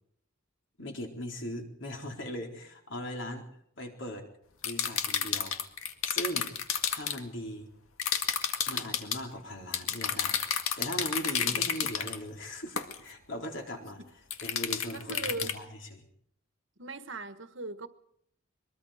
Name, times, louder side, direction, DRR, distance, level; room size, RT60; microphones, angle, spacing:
voice 1, 0.8-3.5 3.8-4.3 4.6-5.6 6.1-6.5 6.9-7.7 8.7-14.0 14.4-16.0, equal, 60° left, 2 dB, 4.1 m, -39 dB
sound 1, 4.6-7.2 8.0-9.2 9.7-12.2 12.8-13.0 14.3-15.5, left 8 dB, 90° left, 2.0 m, -30 dB
voice 2, 11.2-11.8 14.0-14.1 14.9-15.6 16.8-17.9, right 3 dB, 60° right, 9 dB, 1.5 m, -40 dB
23.0 x 23.0 x 5.1 m, 0.71 s
head